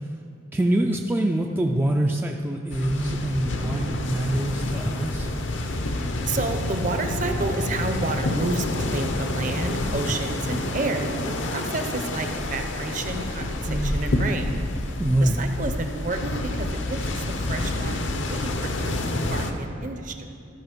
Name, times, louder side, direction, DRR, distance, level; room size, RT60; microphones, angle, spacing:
voice 1, 0.5-5.3 13.7-14.0 15.0-15.4, right 1 dB, 10° right, 1 dB, 0.3 m, -25 dB
sound 1, 2.7-19.5, left 1 dB, 70° left, 0.7 m, -28 dB
voice 2, 6.0-14.6 14.9-20.2, right 2 dB, 40° right, 6 dB, 0.7 m, -31 dB
13.0 x 5.6 x 5.2 m, 2.5 s
head